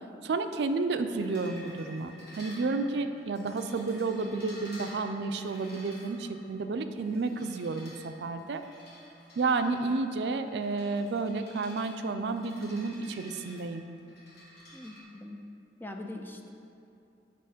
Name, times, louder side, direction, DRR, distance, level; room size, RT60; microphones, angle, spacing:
voice 1, 0.2-8.6 9.4-13.8, right 3 dB, 70° right, 8 dB, 0.4 m, -31 dB
sound 1, 1.2-15.0, left 1 dB, 65° left, 1.4 m, -51 dB
voice 2, 14.7-15.4 15.8-16.5, left 1 dB, 10° left, 3 dB, 0.5 m, -42 dB
6.7 x 5.5 x 5.0 m, 2.7 s
head